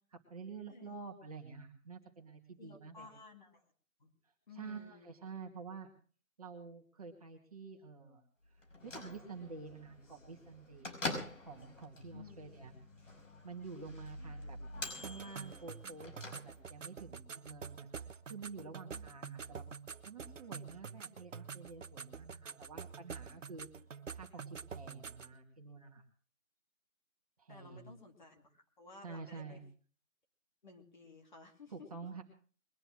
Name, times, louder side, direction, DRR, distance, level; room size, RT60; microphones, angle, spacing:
voice 1, 0.1-3.1 4.5-5.9 6.4-8.2 8.8-11.0 11.4-12.7 13.4-14.6 15.0-19.7 20.0-23.7 24.1-26.0 27.4-27.9 29.0-29.6 31.7-32.2, right 4 dB, 25° right, 2 dB, 2.1 m, -49 dB
voice 2, 2.6-3.6 4.0-4.1 4.5-5.1 12.1-12.4 14.2-14.3 18.9-19.1 27.5-29.6 30.6-31.9, left 4 dB, 35° left, 2 dB, 2.6 m, -55 dB
Bell / Microwave oven, 8.6-16.9, left 2 dB, 65° left, 5.6 m, -46 dB
sound 1, 15.0-25.4, right 6 dB, 65° right, 1.0 m, -47 dB
22.0 x 9.8 x 6.1 m, 0.43 s
hypercardioid pair, 175°, 41 cm